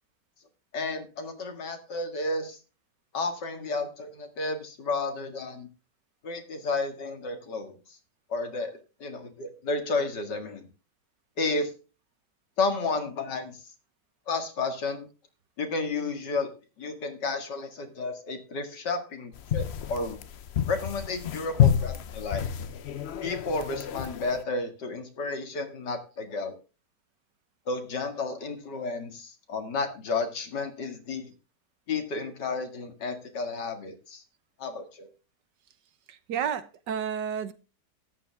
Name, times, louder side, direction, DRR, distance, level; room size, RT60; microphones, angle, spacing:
voice 1, 0.7-2.6 3.1-5.7 6.2-7.7 8.3-10.7 11.4-11.7 12.6-13.6 14.3-15.1 15.6-16.5 16.8-20.2 20.7-22.4 23.2-26.6 27.7-31.3 31.9-34.2 34.6-35.1, left 3 dB, 80° left, 2.7 m, -32 dB
sound 1, 19.3-24.4, left 9 dB, 55° left, 0.7 m, -29 dB
voice 2, 36.1-37.5, right 8 dB, 85° right, 1.7 m, -31 dB
13.5 x 9.9 x 3.4 m
omnidirectional pair, 1.8 m